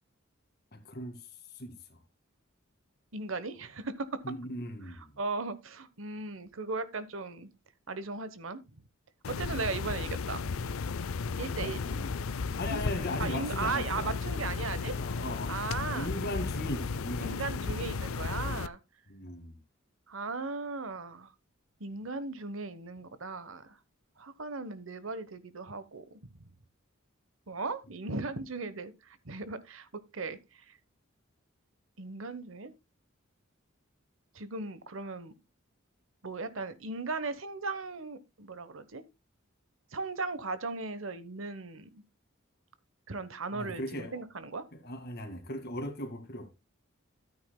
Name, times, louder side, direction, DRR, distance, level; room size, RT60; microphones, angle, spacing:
voice 1, 0.7-1.2 1.6-2.0 4.2-5.1 11.6-12.1 12.6-14.1 14.9-15.6 15.8-17.8 19.1-19.6 43.5-44.2 44.7-46.5, left 1 dB, 50° left, 2.1 m, -38 dB
voice 2, 3.1-4.1 4.9-7.5 7.9-8.8 9.3-10.6 11.3-11.8 12.7-12.9 13.2-14.9 15.5-16.1 17.2-18.8 20.1-21.3 21.8-23.8 24.2-26.0 27.5-29.9 30.1-30.8 32.0-32.7 34.3-35.3 36.2-39.0 39.9-41.9 43.1-44.6, right 3 dB, 65° right, 1.1 m, -37 dB
sound 1, 9.2-18.7, left 4 dB, 80° left, 0.5 m, -34 dB
13.5 x 9.1 x 2.2 m
head